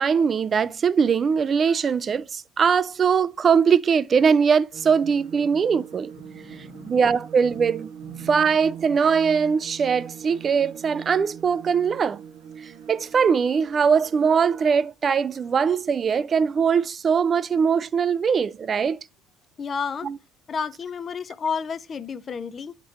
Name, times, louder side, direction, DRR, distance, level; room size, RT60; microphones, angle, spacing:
voice 1, 0.0-6.1 6.8-7.9 8.3-12.2 12.9-19.0 20.0-20.2, right 6 dB, 40° right, 0.4 m, -21 dB
sound 1, 4.7-14.6, right 8 dB, 75° right, 1.0 m, -42 dB
voice 2, 6.2-7.0 8.1-8.3 19.6-20.1 20.5-22.7, left 6 dB, 40° left, 0.5 m, -31 dB
10.5 x 3.7 x 2.8 m
hypercardioid pair, 70°, 0 cm